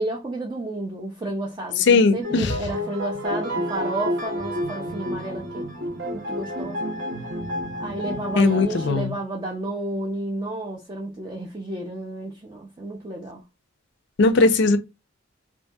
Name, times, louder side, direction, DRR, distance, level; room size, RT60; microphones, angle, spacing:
voice 1, 0.0-6.8 7.8-13.4, right 1 dB, 20° right, 0.4 m, -31 dB
voice 2, 1.9-2.6 8.4-9.1 14.2-14.8, left 3 dB, 55° left, 0.4 m, -18 dB
sound 1, 2.2-9.0, equal, 55° right, 0.7 m, -30 dB
2.7 x 2.5 x 2.2 m
head